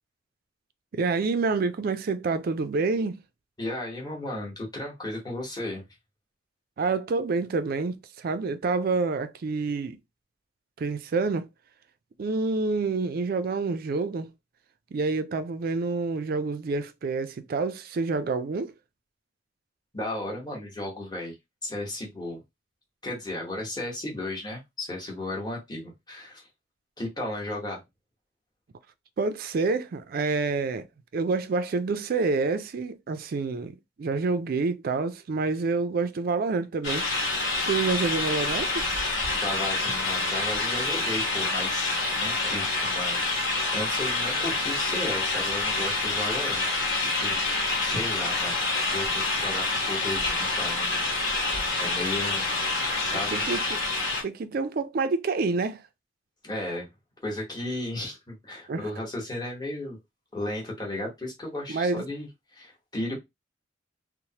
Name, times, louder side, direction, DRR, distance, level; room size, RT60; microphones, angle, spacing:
voice 1, 0.9-3.2 6.8-10.0 10.8-11.5 12.2-14.3 14.9-18.7 29.2-30.9 31.1-37.1 37.7-38.9 53.1-53.8 54.2-55.8 58.7-58.8 61.7-62.0 63.1-63.2, right 4 dB, 45° right, 0.3 m, -28 dB
voice 2, 3.6-5.8 19.9-21.4 21.6-22.4 23.0-26.5 27.0-27.8 39.3-46.6 47.0-47.4 47.8-48.6 48.9-51.0 51.3-52.5 52.9-53.5 56.4-56.9 57.2-60.0 60.3-63.2, left 1 dB, 20° left, 1.0 m, -35 dB
sound 1, 36.8-54.2, left 3 dB, 60° left, 1.3 m, -27 dB
3.1 x 2.0 x 2.8 m
head